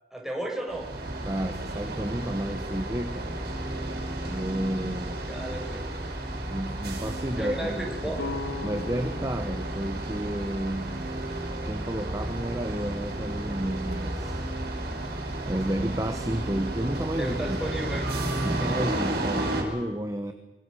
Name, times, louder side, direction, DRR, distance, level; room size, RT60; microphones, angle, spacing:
voice 1, 0.1-0.9 5.3-5.8 7.4-8.2 17.2-18.0 18.6-18.9, right 1 dB, 5° right, 0 dB, 5.9 m, -34 dB
sound 1, 0.7-19.6, right 1 dB, 60° right, 5.7 m, -32 dB
voice 2, 1.2-3.3 4.2-5.3 6.5-8.1 8.6-11.1 11.6-14.4 15.5-17.6 18.4-20.3, right 1 dB, 20° right, 7 dB, 1.2 m, -31 dB
sound 2, 8.2-12.0, left 3 dB, 90° left, 2.1 m, -40 dB
25.0 x 24.0 x 6.4 m, 1.1 s
head